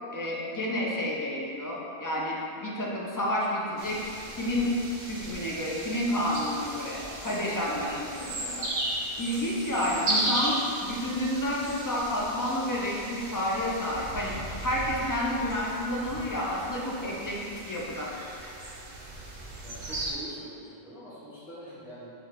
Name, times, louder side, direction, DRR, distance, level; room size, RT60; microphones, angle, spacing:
voice 1, 0.1-4.0 4.3-4.7 5.0-8.7 9.2-18.1, left 1 dB, 25° left, -5 dB, 0.5 m, -30 dB
sound 1, 3.8-20.1, right 1 dB, 60° right, 0.9 m, -36 dB
voice 2, 19.6-22.1, right 1 dB, ahead, -10 dB, 0.8 m, -44 dB
4.6 x 2.5 x 4.5 m, 2.6 s
omnidirectional pair, 1.1 m